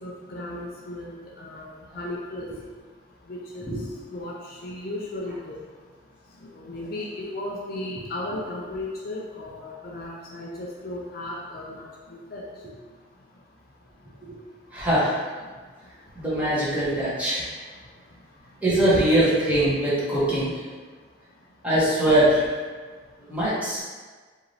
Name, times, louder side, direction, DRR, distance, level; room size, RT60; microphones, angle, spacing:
voice 1, 0.0-2.5 3.3-3.7 4.1-5.5 6.4-12.4 18.9-19.0, left 1 dB, 55° left, -3 dB, 0.6 m, -35 dB
voice 2, 14.7-15.1 16.1-17.4 18.6-20.5 21.6-22.4 23.3-23.8, right 1 dB, 10° right, -11 dB, 1.4 m, -22 dB
4.7 x 2.8 x 3.3 m, 1.4 s
head